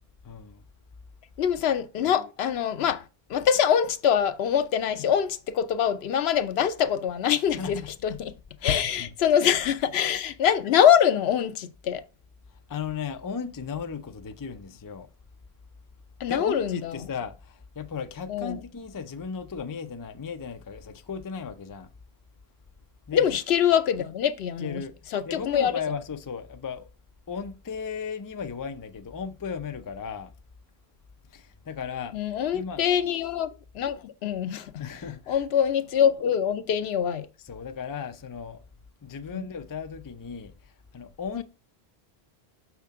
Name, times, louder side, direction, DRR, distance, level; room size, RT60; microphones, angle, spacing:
voice 1, 0.2-0.6 7.6-7.9 8.6-9.1 12.7-15.1 16.3-21.9 23.1-23.3 24.6-25.0 25.2-26.9 27.3-30.3 31.3-32.2 32.5-32.8 34.8-35.4 37.4-38.6 39.0-41.4, left 6 dB, 30° left, 0.4 m, -36 dB
voice 2, 1.4-3.0 3.3-8.3 8.6-12.0 16.2-17.0 18.3-18.6 23.1-24.8 25.1-25.7 32.1-33.5 33.7-34.7 35.3-37.3 39.3-39.5 41.4-41.5, left 9 dB, 75° left, 0.8 m, -24 dB
6.5 x 5.9 x 3.5 m
omnidirectional pair, 1.1 m